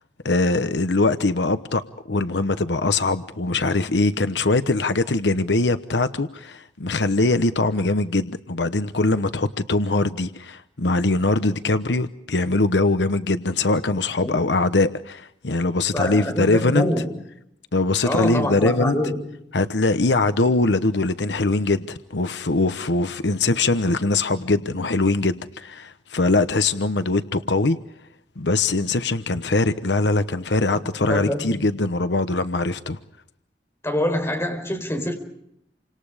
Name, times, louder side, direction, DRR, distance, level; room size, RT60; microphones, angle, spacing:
voice 1, 0.2-1.8 2.1-16.9 17.7-19.0 19.5-27.8 28.4-33.0, left 2 dB, 85° left, 1.0 m, -22 dB
voice 2, 15.9-17.2 18.0-19.3 30.7-30.8 31.1-31.6 33.8-35.1, left 1 dB, 15° left, 4.7 m, -25 dB
29.0 x 26.0 x 5.0 m
head